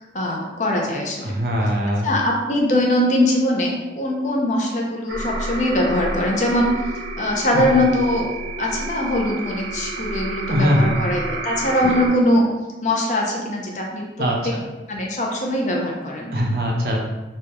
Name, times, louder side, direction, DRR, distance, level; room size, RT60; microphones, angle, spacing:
voice 1, 0.1-1.3 2.0-8.3 8.6-12.5 12.8-14.1 14.4-14.6 14.9-16.3, left 1 dB, 45° left, -1 dB, 0.5 m, -21 dB
voice 2, 1.2-2.1 7.5-7.8 10.5-11.0 11.6-12.0 14.2-14.6 16.3-17.0, equal, 55° right, 0 dB, 0.5 m, -22 dB
sound 1, 5.1-12.1, right 2 dB, 85° right, 0.9 m, -30 dB
3.3 x 2.3 x 2.8 m, 1.1 s
head